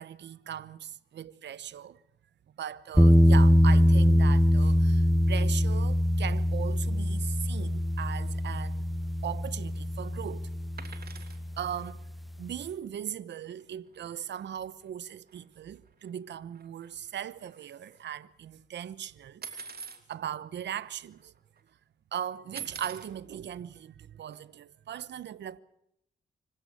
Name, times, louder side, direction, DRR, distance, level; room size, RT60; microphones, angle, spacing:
voice 1, 0.0-2.0 2.6-8.8 9.2-10.5 10.9-11.0 11.6-12.0 12.4-19.7 20.1-21.3 22.1-25.6, right 9 dB, 75° right, 1.0 m, -39 dB
sound 1, 3.0-11.9, equal, ahead, 1.0 m, -23 dB
sound 2, 10.8-11.4 13.6-13.7 13.9-14.1 14.4-14.5 15.3-15.4 15.9-16.3 16.5-18.0 19.4-20.0 20.8-20.9 21.1-21.6 22.6-23.1 24.3-24.4, right 6 dB, 60° right, 3.1 m, -44 dB
25.5 x 16.0 x 8.7 m
cardioid pair, 65°, 18 cm